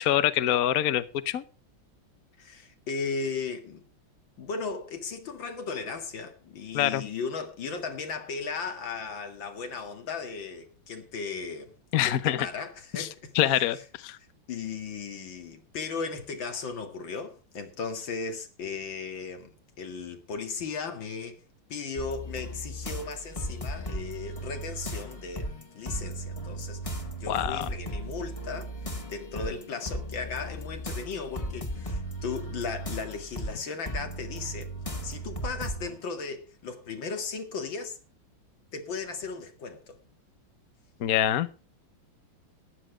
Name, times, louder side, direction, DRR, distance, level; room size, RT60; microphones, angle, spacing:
voice 1, 0.0-1.4 6.7-7.1 11.9-12.4 12.9-13.1 13.3-14.2 27.3-27.7 41.0-41.5, left 12 dB, 60° left, 1.1 m, -25 dB
voice 2, 2.4-3.8 4.4-11.7 12.0-13.8 14.5-19.5 19.8-21.4 21.7-28.7 29.1-34.7 35.0-38.0 38.7-40.0, left 5 dB, 80° left, 2.7 m, -36 dB
sound 1, 22.0-36.0, right 1 dB, 20° left, 1.7 m, -36 dB
14.0 x 10.5 x 4.9 m
omnidirectional pair, 2.1 m